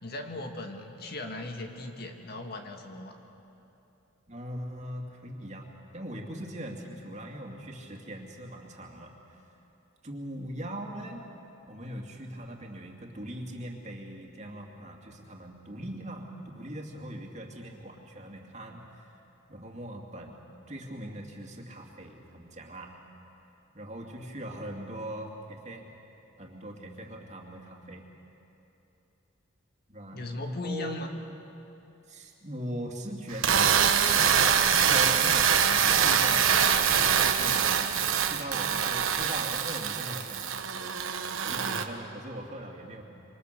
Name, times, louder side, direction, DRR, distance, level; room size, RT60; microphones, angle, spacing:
voice 1, 0.0-3.2 30.1-31.2, left 2 dB, 50° left, 4 dB, 1.9 m, -38 dB
voice 2, 4.3-9.4 10.0-11.2 11.7-19.2 19.5-22.9 23.7-25.9 26.4-28.1 29.9-31.0 32.1-43.0, right 1 dB, 35° right, 1 dB, 2.6 m, -41 dB
sound 1, 33.3-41.8, right 7 dB, 70° right, 1.2 m, -24 dB
26.5 x 24.5 x 6.8 m, 3.0 s
head